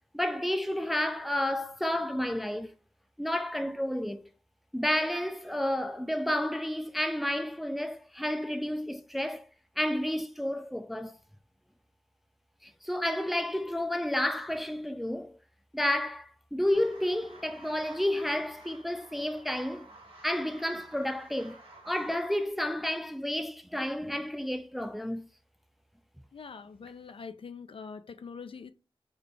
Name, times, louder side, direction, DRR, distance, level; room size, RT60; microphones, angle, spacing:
voice 1, 0.1-2.7 3.2-4.2 4.7-9.4 9.8-11.2 12.6-15.3 15.7-19.9 20.2-21.6 21.9-25.3, left 1 dB, ahead, 0.3 m, -31 dB
sound 1, 16.7-22.5, right 2 dB, 75° right, 1.2 m, -53 dB
voice 2, 26.3-28.7, left 5 dB, 70° left, 0.4 m, -44 dB
3.3 x 2.3 x 3.8 m
wide cardioid pair, 80°, 10 cm